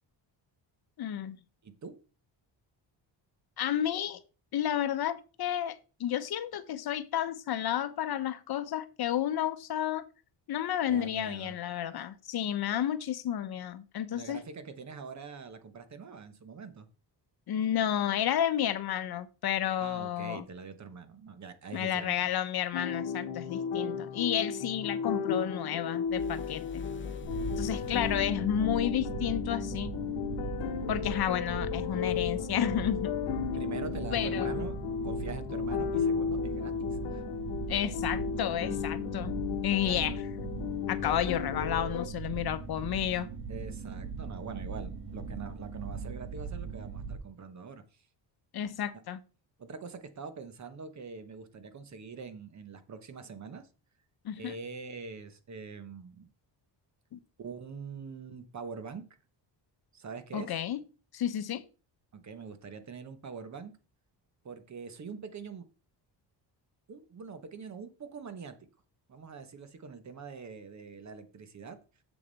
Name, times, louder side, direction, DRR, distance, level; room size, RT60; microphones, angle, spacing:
voice 1, 1.0-1.4 3.6-4.2 4.5-10.0 10.5-14.4 17.5-20.4 21.7-26.8 27.6-29.9 30.9-33.1 34.1-34.5 37.7-39.3 39.6-40.1 40.9-43.3 48.5-49.2 54.2-54.5 57.1-57.2 60.3-60.8 61.1-61.6, left 10 dB, 60° left, 0.8 m, -31 dB
voice 2, 1.6-1.9 10.9-11.6 14.1-16.9 19.8-22.3 33.5-37.2 39.8-40.2 43.5-47.8 49.6-53.7 54.3-56.2 57.4-59.1 59.9-60.6 62.1-63.7 64.4-65.6 66.9-68.5 69.1-71.8, right 5 dB, 40° right, 1.0 m, -44 dB
sound 1, 22.7-42.1, left 7 dB, 85° left, 1.0 m, -34 dB
sound 2, 26.0-28.5, left 5 dB, 30° left, 0.5 m, -43 dB
sound 3, 27.2-47.2, right 4 dB, 60° right, 2.5 m, -39 dB
7.2 x 6.6 x 4.0 m
cardioid pair, 125°, 44 cm